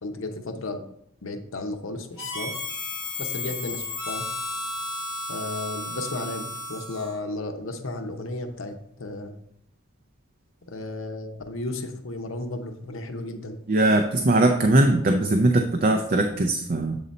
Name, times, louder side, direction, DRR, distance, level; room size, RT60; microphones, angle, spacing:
voice 1, 0.0-0.8 1.2-2.5 3.2-4.3 5.3-8.7 9.0-9.3 10.7-13.6, left 2 dB, 70° left, 6 dB, 0.8 m, -33 dB
Harmonica, 2.2-7.2, left 2 dB, 20° left, 2.1 m, -33 dB
voice 2, 13.7-17.0, right 2 dB, 40° right, 5 dB, 0.5 m, -20 dB
7.8 x 3.9 x 4.2 m, 0.71 s
head